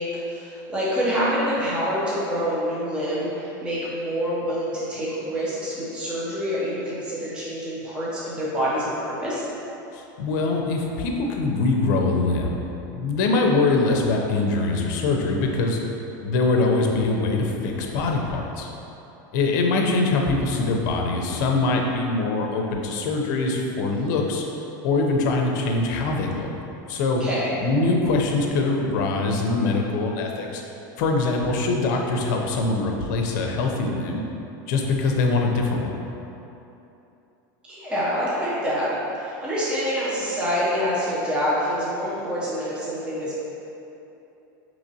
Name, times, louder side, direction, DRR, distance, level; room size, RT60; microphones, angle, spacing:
voice 1, 0.0-9.4 27.2-27.5 37.7-38.9 39.1-43.4, equal, 10° right, -8 dB, 0.6 m, -26 dB
voice 2, 9.9-12.6 12.9-15.8 16.2-18.7 19.3-24.4 24.8-26.5 26.9-27.2 27.6-30.6 31.0-34.2 34.7-35.9, left 3 dB, 65° left, 1 dB, 0.6 m, -23 dB
4.8 x 3.0 x 2.7 m, 3.0 s
supercardioid pair, 155°, 11 cm